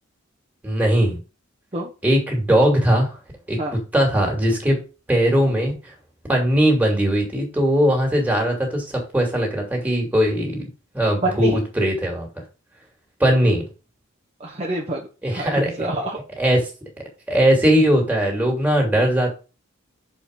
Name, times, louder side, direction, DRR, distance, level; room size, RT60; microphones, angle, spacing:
voice 1, 0.6-1.2 2.0-3.2 3.5-4.8 5.1-5.7 6.3-10.6 10.9-12.3 13.2-13.6 15.2-15.9 16.4-16.7 17.3-19.3, equal, 10° right, 0 dB, 2.9 m, -19 dB
voice 2, 11.2-11.6 14.4-16.2, right 1 dB, 30° right, -2 dB, 1.3 m, -27 dB
6.6 x 5.1 x 5.2 m, 0.32 s
head